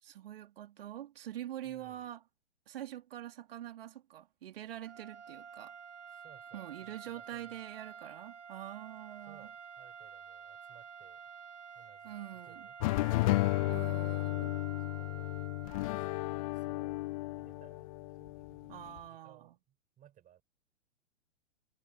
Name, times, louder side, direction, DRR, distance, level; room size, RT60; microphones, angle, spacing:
voice 1, 0.0-2.2 2.7-5.8 6.5-9.5 12.0-12.7 13.7-14.5 18.7-19.5, right 12 dB, 55° right, 3.3 m, -45 dB
voice 2, 1.6-2.1 6.1-7.6 9.2-11.3 11.7-13.3 14.0-15.4 15.9-17.1 17.4-17.9 18.2-20.4, right 11 dB, 25° right, 6.3 m, -62 dB
sound 1, 4.8-16.3, right 7 dB, 85° right, 2.1 m, -50 dB
sound 2, 12.8-19.0, left 20 dB, 30° left, 0.5 m, -33 dB
figure-of-eight pair, 105°, 35 cm